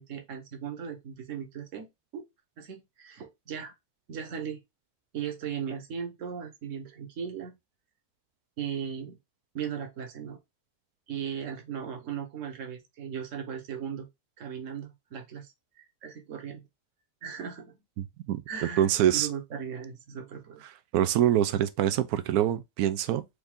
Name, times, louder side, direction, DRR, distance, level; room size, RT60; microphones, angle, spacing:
voice 1, 0.0-2.2 2.6-3.7 4.1-4.6 5.1-7.6 8.6-9.2 9.5-10.4 11.1-14.1 14.4-16.7 17.2-17.8 18.5-20.6, right 8 dB, 55° right, 1.4 m, -37 dB
voice 2, 18.0-19.3 20.9-23.3, right 11 dB, 80° right, 1.1 m, -25 dB
4.8 x 2.7 x 3.5 m
omnidirectional pair, 1.6 m